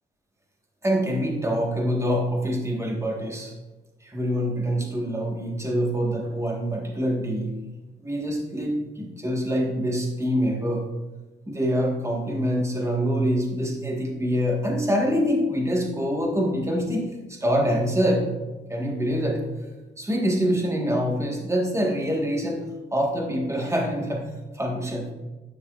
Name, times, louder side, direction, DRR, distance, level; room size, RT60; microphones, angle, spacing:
voice 1, 0.8-3.5 4.0-7.6 8.0-10.9 11.5-18.3 18.7-19.5 20.0-22.7 22.9-25.1, equal, 15° right, 0 dB, 1.6 m, -25 dB
10.0 x 6.1 x 2.5 m, 1.2 s
cardioid pair, 90°, 20 cm